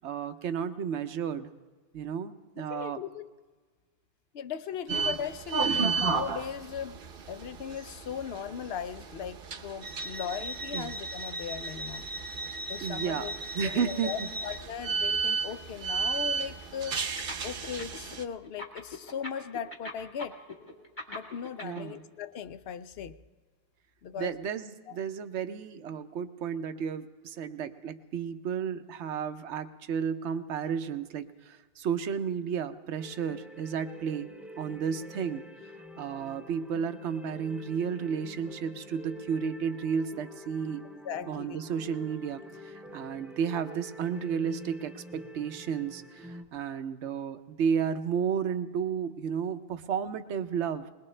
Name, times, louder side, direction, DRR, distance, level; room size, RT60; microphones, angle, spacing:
voice 1, 0.0-1.5 1.9-3.0 5.6-6.0 10.7-10.9 12.8-13.3 13.5-14.3 21.6-22.0 24.2-40.9 41.3-50.9, right 7 dB, 80° right, 10 dB, 1.0 m, -33 dB
voice 2, 2.6-3.3 4.3-7.0 7.3-12.1 12.7-17.0 17.4-20.4 21.1-23.2 24.0-24.3 24.9-25.0 41.0-41.6, left 8 dB, 65° left, 12 dB, 0.8 m, -38 dB
sound 1, 4.9-18.2, right 5 dB, 55° right, 0.9 m, -34 dB
sound 2, 17.2-18.1 18.4-21.8, left 2 dB, 45° left, 2.2 m, -40 dB
sound 3, 33.0-46.4, equal, ahead, 0.5 m, -47 dB
21.0 x 21.0 x 3.3 m, 1.3 s
omnidirectional pair, 1.2 m